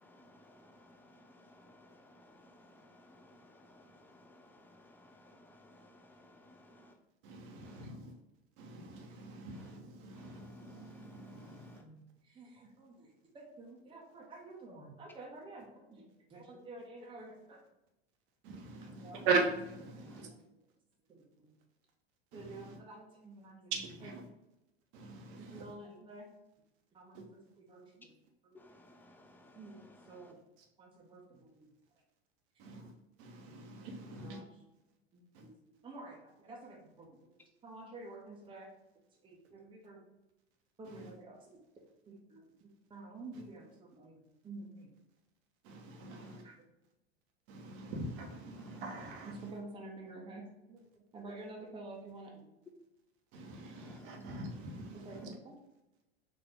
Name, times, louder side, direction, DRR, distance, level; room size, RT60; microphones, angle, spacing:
voice 1, 0.0-7.0 7.6-7.9 9.5-9.7 10.1-11.8 20.1-20.2 28.5-30.3 34.3-34.4 46.2-46.4 48.5-48.8 53.7-54.2, left 1 dB, 5° left, 0.3 m, -60 dB
voice 2, 7.2-8.1 8.6-11.8 18.4-20.3 22.3-22.8 23.7-24.3 24.9-25.7 27.1-27.2 32.6-32.9 33.2-34.4 35.3-35.5 40.9-41.1 43.3-43.4 45.6-46.4 47.5-49.5 53.3-55.3, right 3 dB, 50° right, 1.0 m, -40 dB
voice 3, 11.8-17.6 19.0-19.2 20.0-20.4 21.1-21.5 22.3-23.7 25.3-26.3 26.9-28.1 28.4-28.6 29.5-30.4 30.8-31.7 32.5-32.6 34.0-34.5 35.1-40.1 40.8-41.6 42.1-44.9 46.0-46.7 49.3-52.5 55.0-55.5, right 2 dB, 15° right, 0.9 m, -51 dB
4.3 x 2.7 x 3.5 m
figure-of-eight pair, 85°, 33 cm